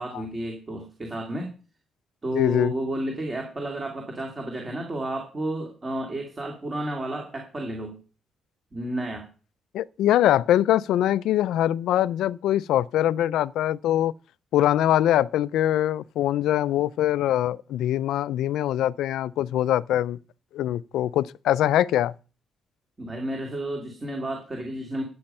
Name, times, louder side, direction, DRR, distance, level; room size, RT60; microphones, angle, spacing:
voice 1, 0.0-1.5 2.2-8.0 8.7-9.3 23.0-25.0, right 1 dB, 20° right, 2.4 m, -31 dB
voice 2, 2.3-2.7 9.7-14.1 14.5-20.2 20.5-22.1, left 12 dB, 75° left, 0.5 m, -23 dB
13.0 x 8.6 x 5.5 m
cardioid pair, 170°, 0 cm